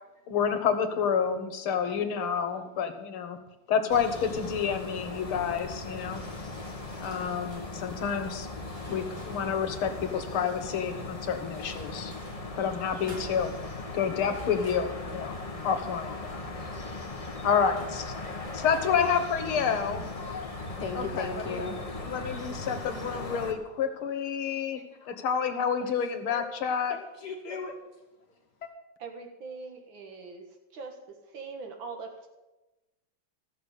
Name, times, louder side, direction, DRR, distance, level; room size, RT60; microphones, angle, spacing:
voice 1, 0.3-3.4 3.7-6.2 7.0-8.5 8.9-12.1 12.6-13.5 13.9-15.4 15.6-16.3 17.4-18.1 18.5-20.1 21.0-21.7 22.0-24.8 25.1-27.0, left 7 dB, 85° left, 9 dB, 2.0 m, -29 dB
sound 1, 3.9-23.5, left 2 dB, 20° left, 1.0 m, -38 dB
sound 2, 5.9-10.7 11.3-12.4 12.8-13.6 14.2-15.4 16.0-17.3 17.7-19.7, equal, 20° right, 5.5 m, -53 dB
voice 2, 20.2-20.5 20.8-21.8 24.7-25.1 26.3-26.4 26.9-27.7 28.6-28.7, left 4 dB, 55° left, 3 dB, 1.7 m, -38 dB
voice 3, 29.0-32.3, right 4 dB, 70° right, 4 dB, 2.5 m, -42 dB
13.0 x 7.1 x 8.2 m, 1.1 s
omnidirectional pair, 2.3 m